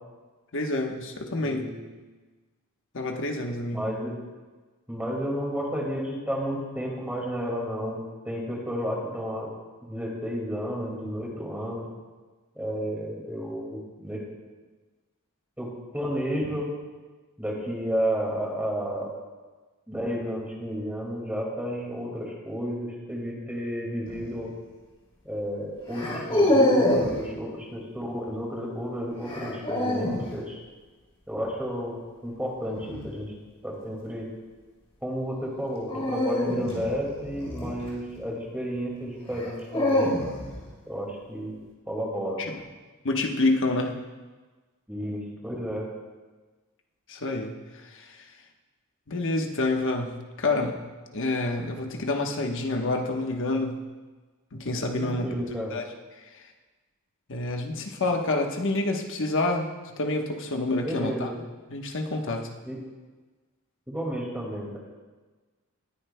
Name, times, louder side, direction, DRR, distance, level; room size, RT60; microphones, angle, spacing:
voice 1, 0.5-1.7 2.9-3.9 42.4-42.6 43.0-43.9 47.1-47.5 47.8-48.3 49.1-50.8 51.1-53.8 54.5-55.9 57.3-59.7 60.0-61.3 61.7-62.5, left 2 dB, 60° left, 2 dB, 1.1 m, -28 dB
voice 2, 1.4-1.9 3.7-4.1 4.9-9.5 9.8-11.9 12.6-14.2 15.6-16.7 17.4-19.1 19.9-24.5 25.2-30.6 31.3-33.3 33.6-34.3 35.0-40.1 40.9-41.5 41.9-42.4 44.9-45.9 55.0-55.7 60.8-61.4 62.6-62.8 63.9-64.8, equal, 5° right, -2 dB, 2.1 m, -32 dB
sound 1, 24.1-24.4 25.9-27.2 29.3-30.3 32.7-33.1 35.9-38.2 39.3-40.6, left 1 dB, 30° left, 2.9 m, -25 dB
19.5 x 9.9 x 2.2 m, 1.3 s
head